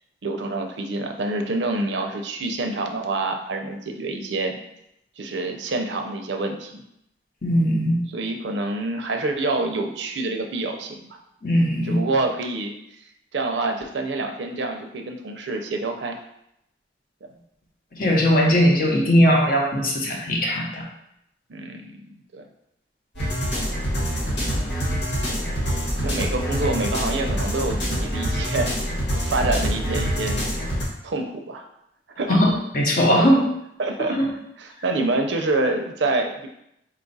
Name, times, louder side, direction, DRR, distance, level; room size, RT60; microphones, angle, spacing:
voice 1, 0.2-4.6 5.2-6.8 8.1-11.2 11.8-12.7 13.3-16.2 21.5-22.4 26.0-30.5 31.0-31.6 32.2-32.3 33.2-33.3 33.8-34.2 34.6-36.5, right 2 dB, 85° right, 4 dB, 0.5 m, -27 dB
voice 2, 7.4-8.0 11.4-12.0 17.9-20.8 32.3-33.4 34.2-34.3, equal, 50° left, -1 dB, 0.8 m, -19 dB
sound 1, 23.1-30.8, equal, 85° left, 1.4 m, -25 dB
4.2 x 2.4 x 3.9 m, 0.79 s
head